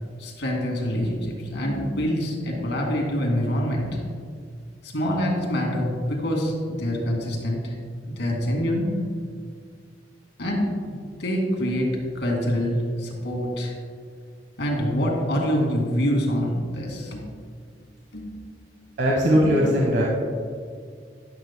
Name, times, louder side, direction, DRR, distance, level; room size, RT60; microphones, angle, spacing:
voice 1, 0.2-4.0 4.8-7.8 8.0-8.9 10.4-10.7 11.2-13.7 14.6-17.3 18.1-18.3 19.5-19.6, equal, 75° left, 0 dB, 2.3 m, -25 dB
voice 2, 19.0-20.1, equal, 65° right, -3 dB, 1.3 m, -19 dB
13.0 x 11.0 x 2.2 m, 2.1 s
head